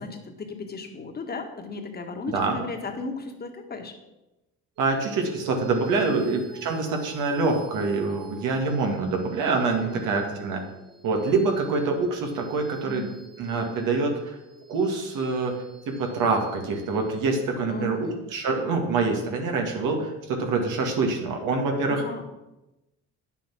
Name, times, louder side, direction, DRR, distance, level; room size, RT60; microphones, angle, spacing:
voice 1, 0.0-3.9 5.9-6.3 9.7-10.3 12.8-13.1 17.6-18.2 21.9-22.2, left 4 dB, 30° left, 4 dB, 1.7 m, -35 dB
voice 2, 2.3-2.6 4.8-10.6 11.0-13.1 13.4-14.4 14.7-15.5 15.9-22.2, right 3 dB, 75° right, 2 dB, 2.0 m, -25 dB
sound 1, 4.8-19.5, right 4 dB, 55° right, 3.7 m, -46 dB
9.4 x 6.9 x 6.1 m, 0.98 s
cardioid pair, 115°, 31 cm